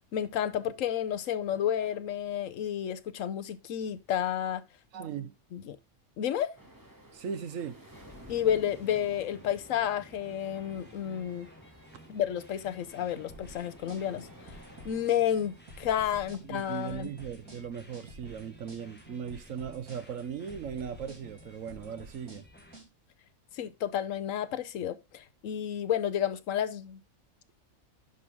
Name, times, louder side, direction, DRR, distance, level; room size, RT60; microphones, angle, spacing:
voice 1, 0.1-4.6 5.5-5.8 6.2-6.5 8.3-11.5 12.1-14.3 14.8-17.1 23.5-27.0, left 10 dB, 70° left, 1.1 m, -31 dB
voice 2, 4.9-5.4 7.1-7.8 16.4-22.4, right 7 dB, 70° right, 1.2 m, -38 dB
sound 1, 6.6-16.0, equal, 15° right, 2.0 m, -53 dB
sound 2, 7.9-22.8, equal, 5° left, 1.5 m, -55 dB
sound 3, 13.3-22.9, right 1 dB, 85° right, 3.2 m, -50 dB
11.0 x 4.7 x 3.5 m
omnidirectional pair, 1.5 m